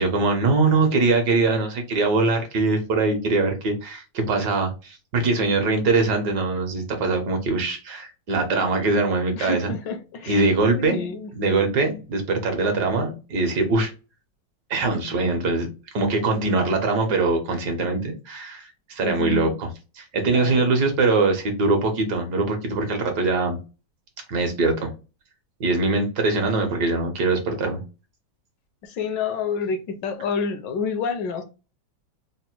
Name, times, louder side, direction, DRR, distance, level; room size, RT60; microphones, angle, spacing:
voice 1, 0.0-9.7 10.3-11.1 11.3-13.9 14.7-15.7 15.9-19.7 20.0-23.6 24.3-24.9 25.6-27.8, right 3 dB, 60° right, 1.4 m, -22 dB
voice 2, 9.4-10.5 10.8-11.3 19.0-19.6 20.3-20.8 28.8-31.4, left 5 dB, 75° left, 1.3 m, -28 dB
4.1 x 2.1 x 4.4 m
omnidirectional pair, 2.1 m